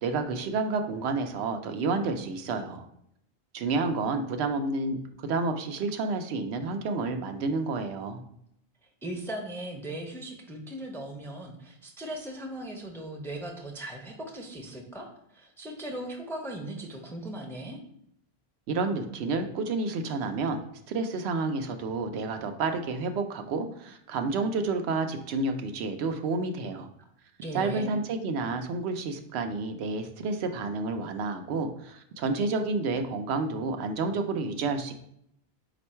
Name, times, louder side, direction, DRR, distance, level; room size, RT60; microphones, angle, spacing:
voice 1, 0.0-2.9 3.5-8.2 18.7-20.6 20.9-26.9 27.5-34.9, right 3 dB, 90° right, 6 dB, 0.8 m, -30 dB
voice 2, 9.0-17.8 27.0-27.1 27.4-28.0, right 1 dB, 5° left, 2 dB, 0.4 m, -38 dB
4.4 x 2.5 x 4.2 m, 0.72 s
omnidirectional pair, 1.1 m